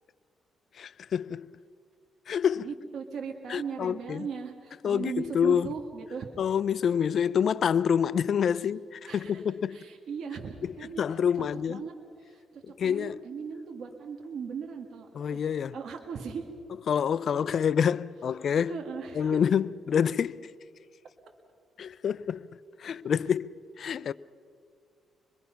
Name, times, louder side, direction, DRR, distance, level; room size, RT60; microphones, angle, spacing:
voice 1, 0.8-1.5 2.3-2.7 3.5-4.3 4.8-5.7 6.4-9.8 11.0-11.8 12.6-13.2 15.1-15.8 16.9-18.7 19.1-20.5 21.8-22.5 22.8-24.1, left 8 dB, 55° left, 0.5 m, -27 dB
voice 2, 2.6-6.3 8.6-8.7 9.1-9.4 9.7-11.0 11.4-11.9 12.2-16.4 17.5-17.7 18.7-19.4, right 6 dB, 65° right, 1.9 m, -38 dB
25.0 x 22.0 x 5.8 m
cardioid pair, 90°, 0 cm